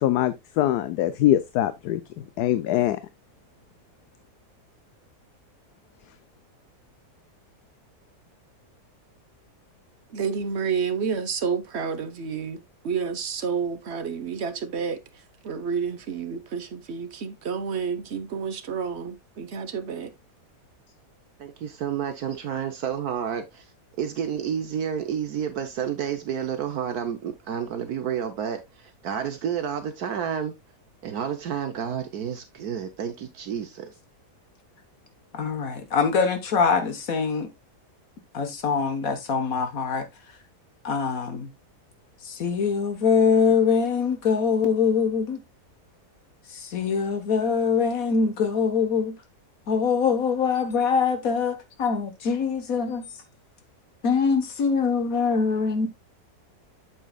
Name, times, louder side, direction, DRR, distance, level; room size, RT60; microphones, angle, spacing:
voice 1, 0.0-2.0 2.4-3.0, left 13 dB, 75° left, 1.1 m, -23 dB
voice 2, 10.1-20.1, right 6 dB, 45° right, 1.1 m, -30 dB
voice 3, 21.4-23.6 24.0-30.5 31.0-33.9, right 8 dB, 65° right, 1.3 m, -30 dB
voice 4, 35.3-37.5 38.3-40.1 40.8-41.5 42.3-45.4 46.5-49.2 49.7-53.0 54.0-55.9, left 5 dB, 60° left, 1.5 m, -23 dB
8.3 x 7.5 x 2.3 m
omnidirectional pair, 1.8 m